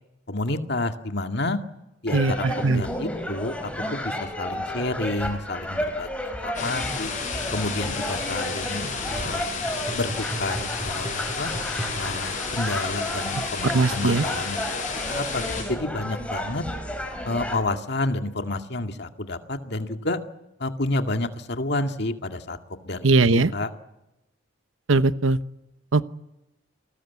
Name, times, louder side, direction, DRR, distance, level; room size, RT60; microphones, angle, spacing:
voice 1, 0.3-1.6 2.0-2.5 2.7-7.1 7.5-9.5 9.9-10.1 10.4-11.5 11.9-16.6 17.2-20.2 20.6-22.6 22.8-23.7, left 2 dB, 55° left, 6 dB, 2.1 m, -30 dB
sound 1, 2.1-17.6, equal, 5° left, 4.7 m, -32 dB
voice 2, 2.1-2.8 13.6-14.2 23.0-23.5 24.9-25.4 25.9-26.0, right 3 dB, 85° right, 13 dB, 1.0 m, -20 dB
sound 2, 6.5-15.6, left 5 dB, 40° left, 6.7 m, -32 dB
sound 3, 8.2-12.3 13.1-13.2, right 1 dB, 15° right, 5.9 m, -38 dB
28.5 x 20.5 x 8.4 m, 0.96 s
head